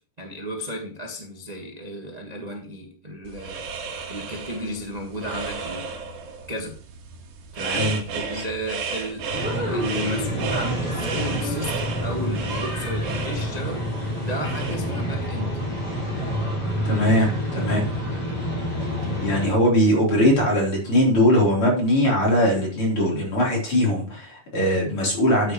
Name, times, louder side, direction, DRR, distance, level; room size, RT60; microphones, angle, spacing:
voice 1, 0.2-3.6 4.1-5.8 6.5-6.8 7.5-9.3 9.7-13.9 14.2-15.6, equal, 25° right, 0.8 m, -33 dB
sound 1, 3.2-14.7, right 5 dB, 80° right, 3.0 m, -34 dB
voice 2, 7.6-8.0 8.3-8.4 16.8-17.8 19.2-25.5, equal, 45° left, 4.6 m, -20 dB
sound 2, 9.3-19.5, equal, 10° left, 5.8 m, -27 dB
13.0 x 8.7 x 3.1 m
omnidirectional pair, 3.5 m